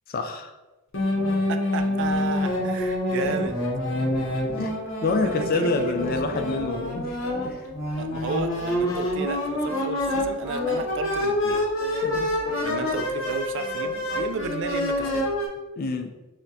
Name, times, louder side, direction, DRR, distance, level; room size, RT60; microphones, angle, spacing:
voice 1, 0.1-0.5 4.6-7.2 7.4-7.7 12.0-12.3 15.8-16.1, left 3 dB, 45° left, 6 dB, 0.4 m, -27 dB
sound 1, 0.9-15.5, left 1 dB, 65° left, 0.7 m, -27 dB
voice 2, 1.5-3.6 5.2-6.5 8.0-11.6 12.6-15.3, right 4 dB, 60° right, 8 dB, 0.3 m, -33 dB
6.3 x 2.1 x 2.7 m, 1.1 s
head